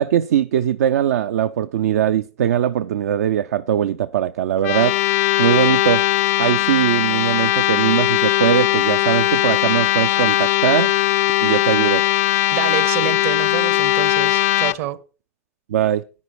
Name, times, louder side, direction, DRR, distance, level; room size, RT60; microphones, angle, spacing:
voice 1, 0.0-5.0 5.4-6.1 6.4-10.9 11.4-12.1 15.7-16.0, right 10 dB, 85° right, 0.5 m, -20 dB
sound 1, 4.6-14.7, left 15 dB, 70° left, 0.5 m, -19 dB
voice 2, 12.5-15.0, right 12 dB, 70° right, 1.1 m, -27 dB
10.5 x 9.6 x 4.6 m
hypercardioid pair, 105°, 8 cm